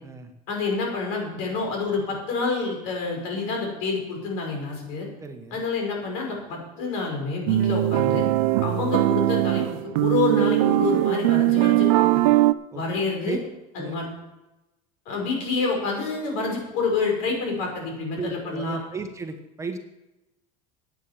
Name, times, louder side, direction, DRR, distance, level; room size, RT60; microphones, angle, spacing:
voice 1, 0.5-5.1 5.5-8.3 8.6-12.2 12.7-13.4 13.8-14.1 15.1-18.8, left 4 dB, 70° left, 1 dB, 5.5 m, -28 dB
voice 2, 5.2-5.6 12.7-12.8 13.2-13.4 13.8-14.0 18.1-19.8, right 4 dB, 15° right, 6 dB, 1.2 m, -34 dB
sound 1, 7.5-12.5, right 16 dB, 85° right, 0.5 m, -20 dB
9.5 x 9.1 x 7.4 m, 0.95 s
supercardioid pair, 125°, 17 cm